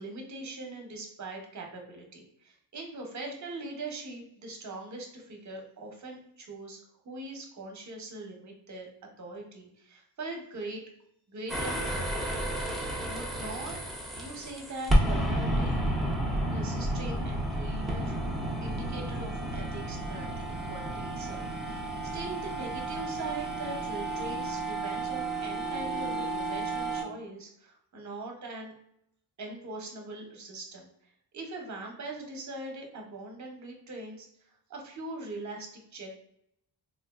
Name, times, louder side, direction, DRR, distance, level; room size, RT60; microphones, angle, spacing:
voice 1, 0.0-8.9 9.2-10.8 11.3-12.1 12.7-13.8 14.2-15.8 16.5-18.2 18.6-20.4 20.7-28.7 29.4-30.9 31.3-34.3 34.7-36.1, right 2 dB, 40° right, 2 dB, 0.7 m, -41 dB
sound 1, 11.5-27.0, right 1 dB, ahead, 0.4 m, -31 dB
3.6 x 2.4 x 2.3 m, 0.73 s
wide cardioid pair, 180°, 43 cm